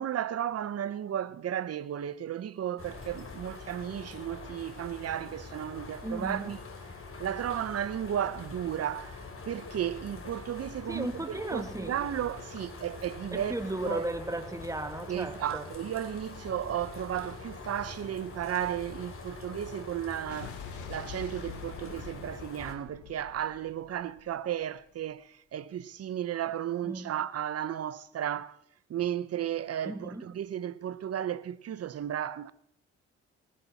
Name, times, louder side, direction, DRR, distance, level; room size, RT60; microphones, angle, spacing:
voice 1, 0.0-6.6 7.2-9.2 9.5-13.6 13.8-14.0 15.1-20.6 20.9-28.6 28.9-32.5, right 10 dB, 55° right, 0.9 m, -34 dB
sound 1, 2.8-22.7, left 4 dB, 45° left, 3.3 m, -44 dB
voice 2, 6.0-6.5 10.9-12.0 13.3-15.7 26.8-27.2 29.8-30.2, right 2 dB, 10° right, 1.7 m, -35 dB
Explosion, 20.3-24.6, left 9 dB, 85° left, 1.2 m, -46 dB
19.0 x 11.5 x 4.2 m
supercardioid pair, 60°, 29 cm